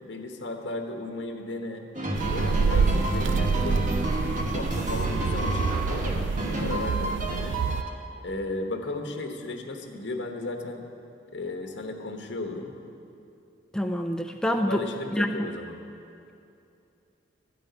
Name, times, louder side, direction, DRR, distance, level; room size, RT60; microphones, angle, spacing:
voice 1, 0.0-1.9 2.3-6.1 6.4-7.6 8.2-10.8 11.3-12.7 14.5-15.8, left 2 dB, 75° left, 4 dB, 1.1 m, -35 dB
sound 1, 1.9-7.9, right 1 dB, 45° right, 1.2 m, -30 dB
sound 2, 2.1-7.8, right 5 dB, 80° right, 0.3 m, -27 dB
voice 2, 13.7-14.8 15.1-15.3, equal, 5° left, 6 dB, 0.3 m, -26 dB
12.5 x 5.4 x 9.2 m, 2.7 s
head